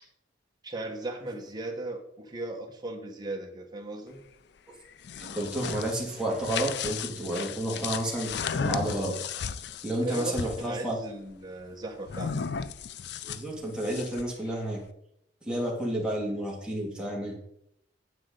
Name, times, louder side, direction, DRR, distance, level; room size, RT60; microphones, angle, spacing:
voice 1, 0.6-4.2 9.9-12.4, right 2 dB, 20° right, 1 dB, 1.3 m, -36 dB
sound 1, 4.9-10.7 12.1-14.3, left 6 dB, 65° left, 0.4 m, -35 dB
voice 2, 5.2-8.3 8.6-9.1 9.8-11.0 13.3-14.8 15.4-17.4, right 1 dB, 5° right, -4 dB, 2.5 m, -31 dB
9.7 x 7.5 x 4.0 m, 0.74 s
head